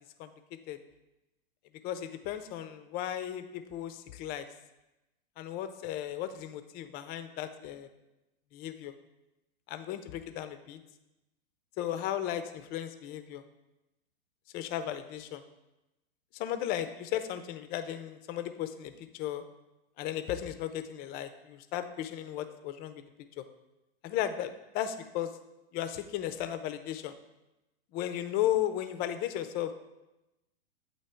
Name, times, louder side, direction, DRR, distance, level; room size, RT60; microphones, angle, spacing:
voice 1, 1.8-4.5 5.4-7.9 8.5-8.9 9.7-10.8 11.8-13.4 14.5-15.4 16.3-19.4 20.0-23.0 23.4-23.5 24.0-25.3 25.7-27.2 27.9-29.7, left 11 dB, 30° left, 10 dB, 0.5 m, -35 dB
8.2 x 2.9 x 4.3 m, 0.99 s
hypercardioid pair, 115°, 29 cm